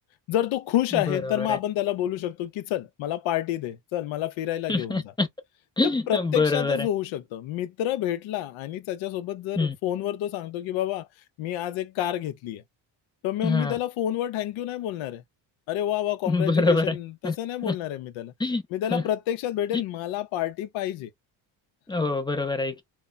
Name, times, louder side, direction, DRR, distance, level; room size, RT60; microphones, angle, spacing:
voice 1, 0.3-5.0 6.1-11.1 11.4-12.6 13.2-15.2 15.7-18.3 18.7-21.1, left 12 dB, 70° left, 0.6 m, -29 dB
voice 2, 0.9-1.6 4.7-5.3 5.8-6.9 9.6-9.7 13.4-13.8 16.3-17.0 17.2-17.3 17.6-17.7 18.4-18.6 18.9-19.0 21.9-22.8, left 3 dB, 10° left, 0.5 m, -25 dB
2.2 x 2.1 x 3.8 m
cardioid pair, 125°, 49 cm